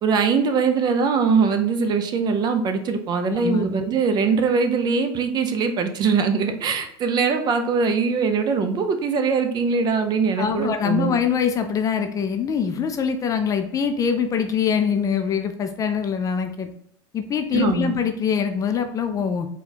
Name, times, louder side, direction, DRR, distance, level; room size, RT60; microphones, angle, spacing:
voice 1, 0.0-11.1 17.5-18.0, right 5 dB, 35° right, 7 dB, 0.6 m, -22 dB
voice 2, 3.3-3.7 10.4-16.7 17.1-19.5, left 7 dB, 25° left, 7 dB, 0.4 m, -23 dB
4.4 x 2.3 x 4.0 m, 0.70 s
supercardioid pair, 115°, 13 cm